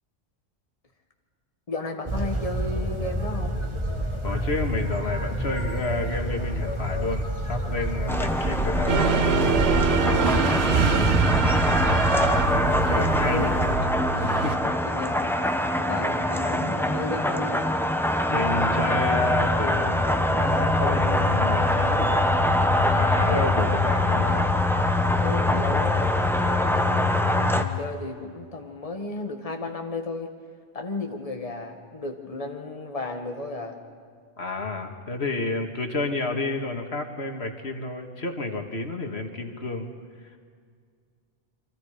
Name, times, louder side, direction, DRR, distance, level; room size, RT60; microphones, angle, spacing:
voice 1, 1.7-3.6 10.5-11.1 13.2-13.6 14.8-15.2 15.9-17.7 25.2-26.1 26.8-30.3 30.7-33.8, left 2 dB, 35° left, 3 dB, 1.9 m, -33 dB
sound 1, 2.1-13.7, equal, 25° right, 2.0 m, -28 dB
voice 2, 4.2-9.4 10.4-10.8 11.4-11.8 12.5-13.7 14.2-14.7 18.3-22.3 22.8-24.5 26.4-26.8 34.4-39.9 40.2-40.4, left 2 dB, 85° left, 4 dB, 2.2 m, -31 dB
sound 2, 8.1-27.6, left 1 dB, ahead, 1.1 m, -23 dB
sound 3, 8.9-14.6, right 6 dB, 80° right, 1.1 m, -25 dB
29.0 x 24.5 x 5.1 m, 2.1 s
omnidirectional pair, 1.1 m